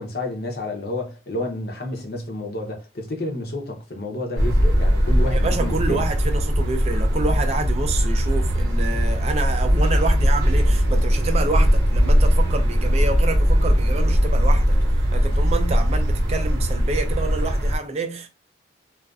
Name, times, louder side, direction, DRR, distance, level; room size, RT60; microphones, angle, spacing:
voice 1, 0.0-6.0, left 1 dB, 55° left, 0.6 m, -30 dB
sound 1, 4.4-17.8, equal, 80° right, 0.7 m, -19 dB
voice 2, 5.3-14.8 15.1-18.3, right 3 dB, 35° right, 0.3 m, -28 dB
2.3 x 2.3 x 2.3 m
head